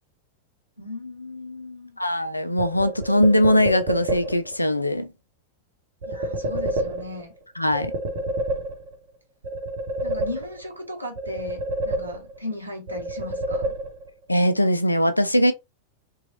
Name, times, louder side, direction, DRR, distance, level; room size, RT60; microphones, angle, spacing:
voice 1, 0.8-2.0 6.0-7.3 10.0-13.7, left 2 dB, 85° right, 0.8 m, -36 dB
voice 2, 2.0-5.1 7.6-7.9 14.3-15.5, left 1 dB, 85° left, 0.3 m, -20 dB
sound 1, 2.6-4.6 6.0-7.4 7.7-9.1 9.4-10.8 11.2-12.5 12.9-14.2, right 1 dB, 60° right, 0.9 m, -29 dB
3.0 x 2.3 x 2.8 m
figure-of-eight pair, 90°, 0 cm